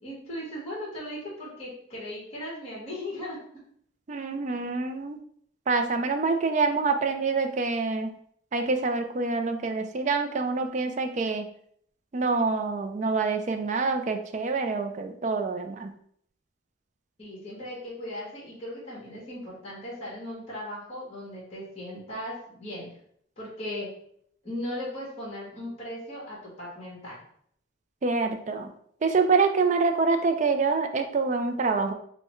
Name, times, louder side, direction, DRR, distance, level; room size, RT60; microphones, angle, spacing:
voice 1, 0.0-3.4 17.2-22.9 23.4-23.9 24.4-27.2, left 1 dB, 30° left, -6 dB, 1.4 m, -37 dB
voice 2, 4.1-5.2 5.7-8.1 8.5-11.4 12.1-15.9 28.0-28.7 29.0-31.9, right 4 dB, 35° right, 7 dB, 0.3 m, -26 dB
5.4 x 2.1 x 3.0 m, 0.65 s
head